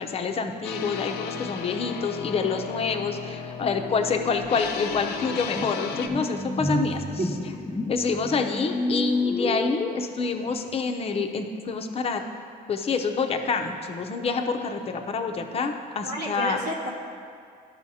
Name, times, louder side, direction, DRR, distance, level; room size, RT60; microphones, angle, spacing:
voice 1, 0.0-7.0 7.9-12.2 12.7-16.6, left 4 dB, 35° left, 5 dB, 0.6 m, -27 dB
sound 1, 0.6-6.1, left 7 dB, 80° left, 0.6 m, -35 dB
sound 2, 4.0-4.1 4.4-10.6, left 1 dB, 5° left, 0.3 m, -32 dB
voice 2, 16.0-16.9, right 1 dB, 65° right, -2 dB, 0.8 m, -30 dB
12.5 x 5.6 x 2.8 m, 2.3 s
cardioid pair, 110°, 17 cm